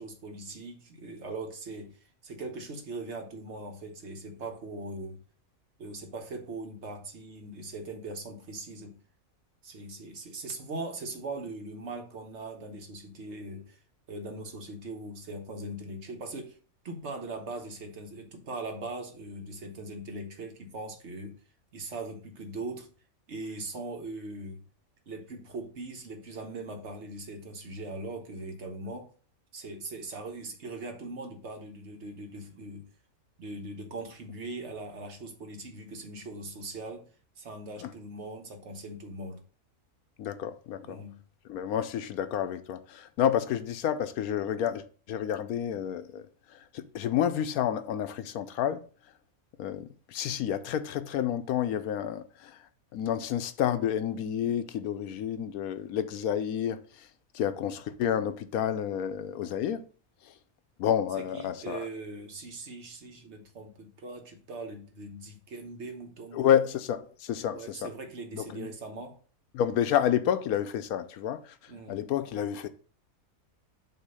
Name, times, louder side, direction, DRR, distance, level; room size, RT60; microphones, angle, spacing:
voice 1, 0.0-5.2 5.8-9.0 9.6-13.8 14.1-16.6 16.8-21.4 21.7-22.9 23.3-24.6 25.1-29.1 29.5-32.9 33.4-37.1 37.4-39.4 40.8-41.2 61.2-66.6 67.5-69.2 71.7-72.1, right 2 dB, 50° right, 1.4 m, -40 dB
voice 2, 40.2-41.0 41.5-46.2 46.7-48.8 49.6-52.5 52.9-56.8 57.3-59.8 60.8-61.9 66.3-67.9 68.3-68.7 69.5-71.4 71.9-72.7, left 9 dB, 85° left, 1.1 m, -29 dB
8.0 x 2.9 x 5.5 m
omnidirectional pair, 1.5 m